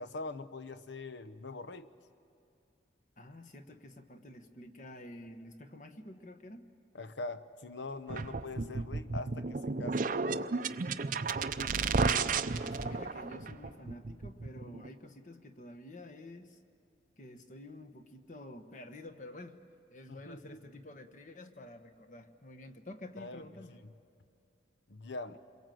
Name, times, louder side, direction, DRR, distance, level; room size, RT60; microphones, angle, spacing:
voice 1, 0.0-1.9 6.9-10.0 20.1-20.6 23.2-23.4 24.9-25.4, left 3 dB, 80° left, 12 dB, 0.9 m, -43 dB
voice 2, 3.2-6.7 10.9-12.2 12.7-16.6 17.2-19.6 19.9-23.8 25.3-25.4, left 1 dB, 40° left, 7 dB, 1.2 m, -50 dB
sound 1, 8.1-14.9, right 4 dB, 45° right, 0.6 m, -33 dB
27.5 x 22.5 x 7.7 m, 2.6 s
head